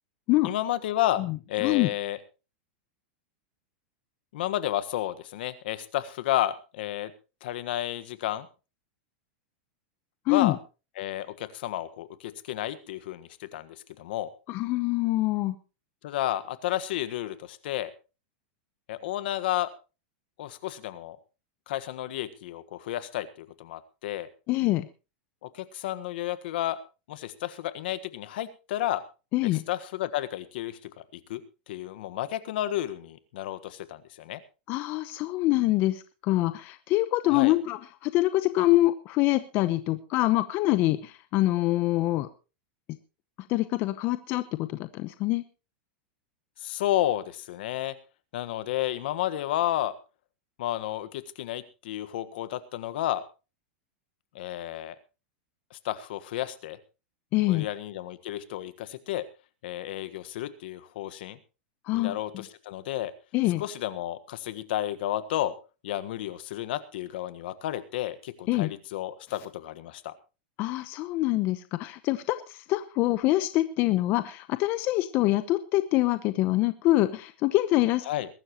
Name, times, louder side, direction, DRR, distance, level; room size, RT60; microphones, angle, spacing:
voice 1, 0.4-1.2 1.5-2.2 4.3-7.1 7.4-8.5 10.3-10.6 11.0-14.3 16.0-17.9 18.9-19.7 20.4-21.2 21.7-24.3 25.4-26.8 27.1-29.0 29.4-31.4 31.7-34.4 37.3-37.5 46.6-47.9 48.3-49.9 50.6-53.2 54.3-54.9 55.7-56.8 57.4-59.2 59.6-61.4 61.9-63.1 63.6-65.5 65.8-70.1 78.1-78.3, left 13 dB, 70° left, 14 dB, 1.5 m, -31 dB
voice 2, 1.2-1.9 10.3-10.5 14.5-15.6 24.5-24.9 29.3-29.7 34.7-42.3 43.5-45.4 57.3-57.7 61.9-62.4 63.3-63.6 68.5-68.7 70.6-78.1, left 17 dB, 40° left, 12 dB, 0.9 m, -25 dB
22.0 x 12.5 x 3.0 m, 0.31 s
supercardioid pair, 150°, 6 cm